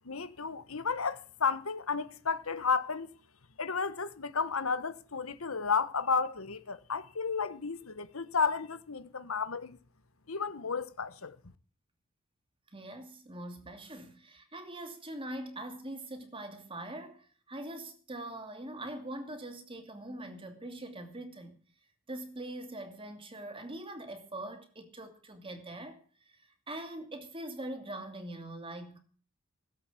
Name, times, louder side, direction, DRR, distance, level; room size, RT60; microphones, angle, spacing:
voice 1, 0.0-3.1 3.6-9.8 10.3-11.4, left 5 dB, 85° left, 1.2 m, -32 dB
voice 2, 12.7-21.6 22.1-29.0, right 1 dB, 25° right, 2.6 m, -43 dB
17.0 x 8.2 x 8.4 m
head